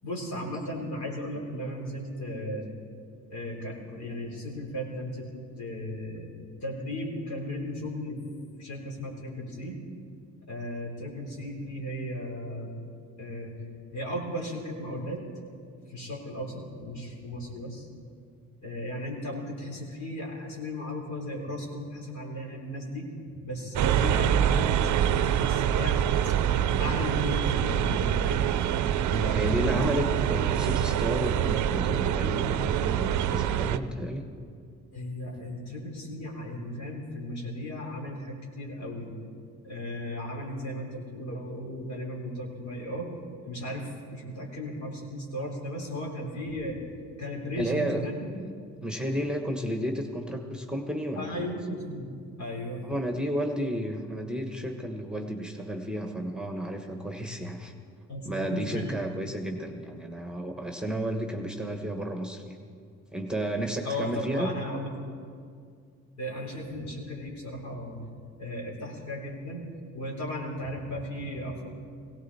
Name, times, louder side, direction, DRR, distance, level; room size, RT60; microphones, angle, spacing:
voice 1, 0.0-2.7 3.3-8.2 8.6-9.8 10.5-12.7 13.2-13.6 13.9-15.2 15.9-17.9 18.6-23.1 23.4-26.0 26.2-26.4 26.8-28.5 29.2-29.9 34.9-39.1 39.6-43.1 43.4-46.8 47.2-48.3 51.2-52.1 52.4-52.9 57.3-57.4 58.1-58.9 63.8-65.1 66.2-68.0 68.4-69.7 69.9-71.7, left 1 dB, 65° left, -2 dB, 4.0 m, -36 dB
sound 1, 23.8-33.8, right 10 dB, 70° right, 0.6 m, -25 dB
voice 2, 29.1-34.2 47.5-48.0 48.3-48.5 48.8-51.5 52.8-57.7 58.2-62.6 63.1-64.5, right 1 dB, 5° right, 3 dB, 1.2 m, -32 dB
18.0 x 17.0 x 4.2 m, 2.3 s
cardioid pair, 90°, 30 cm